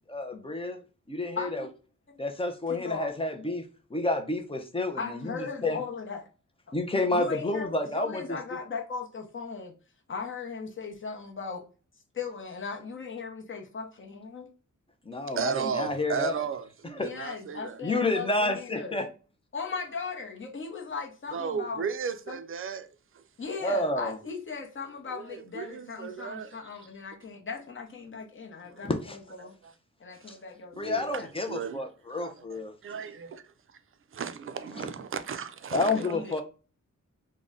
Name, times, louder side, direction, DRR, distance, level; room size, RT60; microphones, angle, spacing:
voice 1, 0.1-0.8 1.1-1.7 2.2-3.7 3.9-5.8 6.7-8.2 15.1-16.3 17.0-17.1 17.8-19.1 23.6-24.2 28.8-29.2 30.3-30.4 30.8-32.7 35.7-36.4, left 2 dB, 20° left, 0.5 m, -29 dB
voice 2, 1.4-1.7 2.1-2.2 2.7-3.2 5.0-6.2 7.1-9.7 10.1-11.6 12.1-14.5 15.3-15.5 17.0-18.9 19.5-21.9 22.3-22.4 23.4-29.5 30.0-31.5 35.8-36.4, left 5 dB, 40° left, 0.8 m, -38 dB
voice 3, 15.3-17.8 21.3-22.9 23.1-23.2 25.1-26.5 28.6-28.8 29.4-29.7 30.2-30.3 30.7-31.8 32.2-33.5 34.1-36.4, right 6 dB, 45° right, 0.4 m, -35 dB
3.7 x 2.1 x 3.5 m
wide cardioid pair, 175°, 30 cm